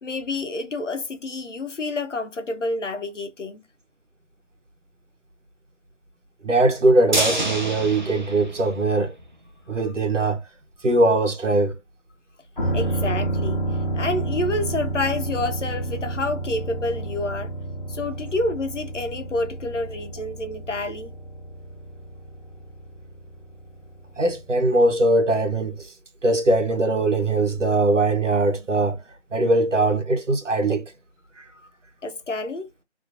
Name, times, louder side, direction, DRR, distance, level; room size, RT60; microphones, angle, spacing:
voice 1, 0.0-3.6 9.9-10.0 12.7-13.6 13.9-17.5 17.9-21.1 31.6-31.7 32.0-32.7, left 2 dB, 75° left, 0.9 m, -28 dB
voice 2, 6.4-9.1 9.7-10.4 10.8-11.7 24.2-25.9 26.2-29.0 29.3-30.9 31.4-31.5, right 2 dB, 85° right, 1.1 m, -21 dB
sound 1, 7.1-9.3 9.6-9.7 10.0-10.1, right 1 dB, 40° right, 0.6 m, -27 dB
sound 2, 12.6-24.1 24.4-24.5, right 2 dB, 40° left, 1.0 m, -30 dB
2.9 x 2.5 x 2.7 m
figure-of-eight pair, 170°, 36 cm